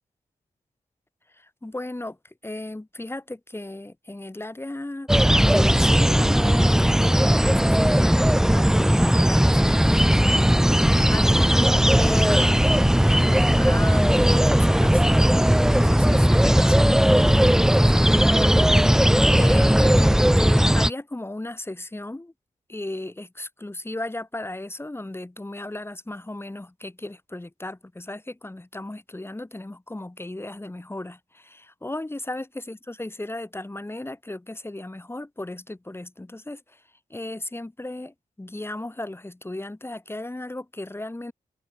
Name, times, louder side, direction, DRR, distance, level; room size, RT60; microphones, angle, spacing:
voice 1, 1.3-5.1 5.4-18.6 19.3-22.3 22.7-36.8 37.1-41.3, left 1 dB, 15° left, 3.5 m, -36 dB
sound 1, 5.1-20.9, equal, 5° right, 1.5 m, -18 dB
wide cardioid pair, 85°, 14 cm